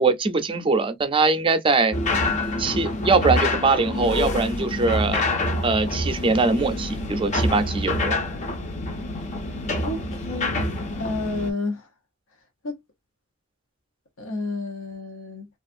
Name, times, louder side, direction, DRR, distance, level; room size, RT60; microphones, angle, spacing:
voice 1, 0.0-2.0 2.6-5.2 5.6-8.2, right 3 dB, 25° right, 0.5 m, -22 dB
sound 1, 1.9-11.5, left 1 dB, 35° left, 0.5 m, -26 dB
voice 2, 9.8-10.6 11.0-11.9 12.6-12.8 14.2-15.5, left 2 dB, 80° left, 0.7 m, -30 dB
2.4 x 2.4 x 2.5 m
head